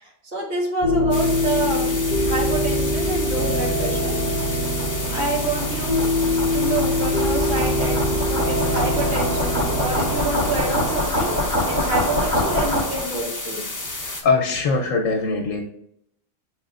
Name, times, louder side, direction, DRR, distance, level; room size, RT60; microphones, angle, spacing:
voice 1, 0.0-1.9 2.3-4.4 5.1-6.1 6.5-8.0 8.2-13.6, right 2 dB, 65° right, -3 dB, 1.7 m, -28 dB
sound 1, 0.8-10.9, left 1 dB, 25° right, 0.8 m, -23 dB
sound 2, 1.1-14.2, left 2 dB, 30° left, 0.3 m, -31 dB
sound 3, 3.2-13.2, left 1 dB, 80° right, 1.5 m, -26 dB
voice 2, 13.9-15.6, left 4 dB, 75° left, 3 dB, 0.9 m, -22 dB
7.2 x 3.0 x 2.4 m, 0.78 s
omnidirectional pair, 1.4 m